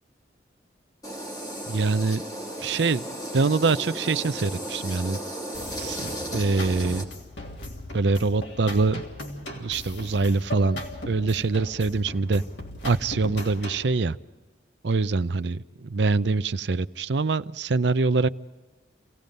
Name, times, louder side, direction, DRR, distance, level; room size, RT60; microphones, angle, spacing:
sound 1, 1.0-7.0, right 1 dB, 20° left, 3.0 m, -35 dB
voice 1, 1.7-2.2 2.6-3.0 3.3-5.2 5.8-7.1 7.9-9.0 9.5-12.4 12.8-14.2 14.8-18.3, right 3 dB, 75° right, 14 dB, 0.6 m, -24 dB
sound 2, 5.5-13.9, left 1 dB, 85° left, 3.3 m, -38 dB
27.5 x 17.5 x 5.3 m, 1.2 s
head